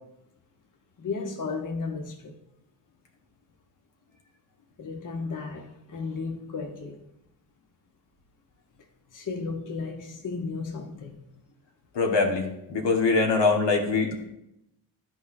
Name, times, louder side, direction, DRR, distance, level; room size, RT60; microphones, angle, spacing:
voice 1, 1.0-2.3 4.8-7.0 9.1-11.3, left 4 dB, 45° left, 1.0 m, -34 dB
voice 2, 11.9-12.4 12.7-14.3, left 4 dB, 70° left, 1.3 m, -23 dB
10.5 x 4.1 x 2.6 m
supercardioid pair, 55°, 43 cm